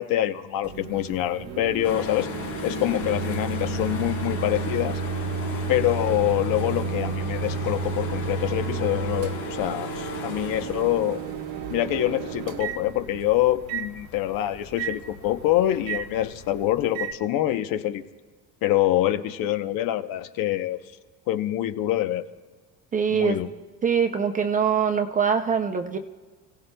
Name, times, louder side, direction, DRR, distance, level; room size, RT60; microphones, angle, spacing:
voice 1, 0.0-2.3 2.6-5.0 5.7-11.2 11.7-18.0 18.6-20.8 21.3-22.2 23.1-23.5, left 13 dB, 60° left, 10 dB, 0.8 m, -25 dB
Microwave oven, 0.6-17.1, right 5 dB, 65° right, 1.3 m, -32 dB
sound 1, 1.8-16.7, left 7 dB, 80° left, 3.1 m, -38 dB
voice 2, 22.9-23.4 23.8-26.0, right 7 dB, 20° right, 6 dB, 0.4 m, -23 dB
30.0 x 17.0 x 2.2 m, 1.4 s
cardioid pair, 165°, 39 cm